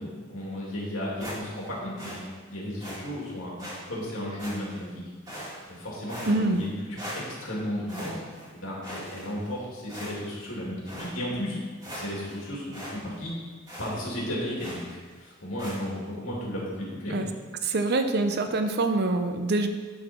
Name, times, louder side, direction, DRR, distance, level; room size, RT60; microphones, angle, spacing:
voice 1, 0.0-2.2 2.5-4.9 5.7-7.0 7.3-8.1 8.5-11.6 11.9-13.3 13.8-14.8 15.2-17.3, left 1 dB, 75° left, -4 dB, 2.7 m, -34 dB
sound 1, 1.2-1.7 2.0-2.2 2.8-3.0 3.6-3.8 4.4-4.9 5.3-5.8 6.1-6.7 7.0-7.5 7.9-8.5 8.8-9.5 9.9-10.4 10.9-11.1 11.5-11.6 11.8-12.4 12.7-13.0 13.2-13.3 13.7-13.9 14.6-14.9 15.6-15.8, equal, 20° right, 2.1 m, -40 dB
voice 2, 6.3-6.6 17.1-17.3 17.6-19.7, right 2 dB, 55° right, 7 dB, 0.6 m, -25 dB
11.5 x 4.2 x 4.4 m, 1.4 s
head